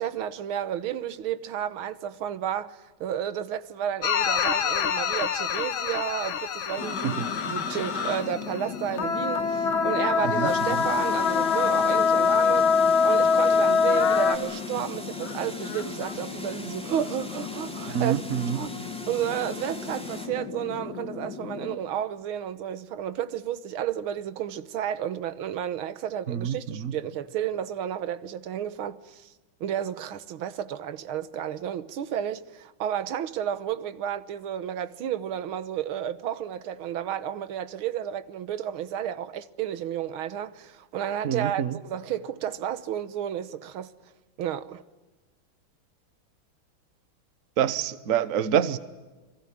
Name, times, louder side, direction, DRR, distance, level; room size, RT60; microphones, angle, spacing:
voice 1, 0.0-12.7 13.0-18.2 18.5-18.7 19.1-29.3 29.6-43.9 44.4-44.8, right 10 dB, 80° right, 1.8 m, -32 dB
sound 1, 4.0-8.6 8.9-14.4, left 6 dB, 75° left, 2.0 m, -24 dB
sound 2, 6.8-21.8, left 6 dB, 55° left, 1.9 m, -36 dB
voice 2, 10.2-10.8 17.9-18.6 26.3-27.0 41.2-41.8 47.6-48.8, right 9 dB, 50° right, 1.2 m, -27 dB
sound 3, 10.4-20.3, equal, 5° left, 2.7 m, -42 dB
30.0 x 23.0 x 7.5 m
omnidirectional pair, 2.3 m